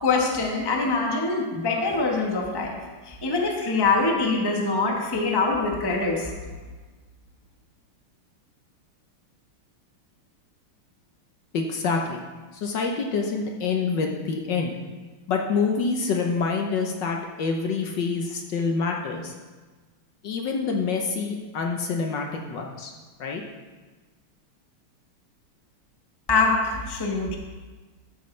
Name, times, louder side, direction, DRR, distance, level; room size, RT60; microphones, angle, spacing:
voice 1, 0.0-2.8 3.0-6.3 26.3-27.4, left 3 dB, 15° left, 1 dB, 0.8 m, -24 dB
voice 2, 11.5-12.2 12.5-14.7 15.3-19.3 20.2-22.9 23.2-23.4, left 4 dB, 65° left, 2 dB, 1.4 m, -26 dB
13.5 x 8.3 x 3.2 m, 1.3 s
omnidirectional pair, 2.4 m